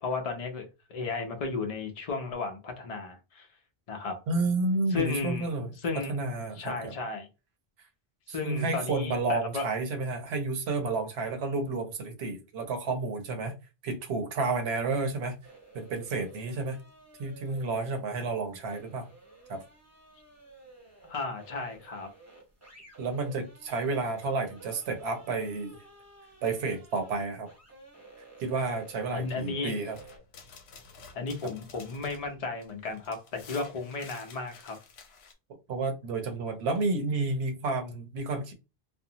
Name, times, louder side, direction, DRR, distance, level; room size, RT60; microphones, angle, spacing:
voice 1, 0.0-3.5 3.9-4.2 4.9-5.5 5.8-6.1 6.6-7.3 8.3-9.7 21.0-22.1 29.1-29.8 31.1-34.8, left 4 dB, 45° left, 0.6 m, -34 dB
voice 2, 4.3-6.9 8.3-13.5 13.8-15.4 15.7-16.8 17.2-19.1 19.5-19.6 23.0-25.8 26.4-27.5 28.4-30.0 31.4-31.5 35.7-38.5, right 3 dB, 80° right, 0.9 m, -31 dB
sound 1, 14.6-30.2, right 2 dB, 15° right, 0.9 m, -53 dB
sound 2, 29.9-35.3, left 5 dB, 85° left, 0.9 m, -51 dB
2.6 x 2.1 x 2.7 m
omnidirectional pair, 1.1 m